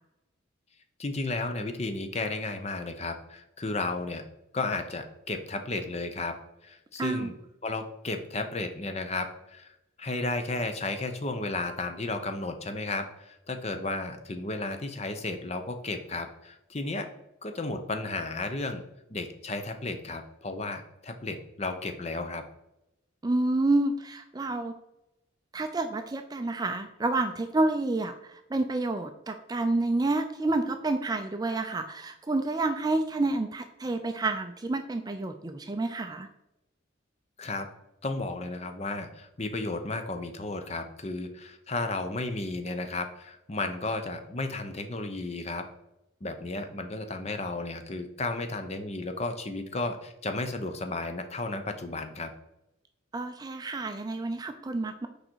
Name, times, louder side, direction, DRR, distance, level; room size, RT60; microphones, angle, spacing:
voice 1, 1.0-4.2 4.5-6.4 6.6-7.3 7.6-9.7 10.0-17.1 17.4-18.8 19.1-22.4 37.4-37.7 38.0-45.7 46.2-52.3, left 2 dB, 30° left, 7 dB, 0.7 m, -33 dB
voice 2, 7.0-7.3 23.2-24.7 25.5-36.3 53.1-55.1, right 2 dB, 20° right, 7 dB, 0.4 m, -29 dB
6.4 x 5.0 x 4.6 m, 0.88 s
head